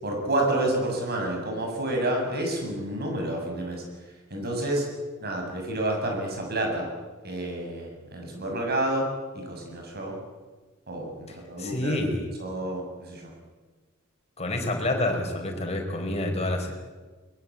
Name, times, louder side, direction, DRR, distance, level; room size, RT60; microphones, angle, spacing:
voice 1, 0.0-3.8 4.3-4.9 5.2-6.9 7.2-9.1 9.3-10.2 10.9-12.0 12.4-13.3, right 1 dB, 50° right, 1 dB, 7.2 m, -29 dB
voice 2, 11.6-12.2 14.4-16.7, left 1 dB, 30° left, 2 dB, 4.8 m, -28 dB
22.5 x 21.5 x 8.7 m, 1.3 s
head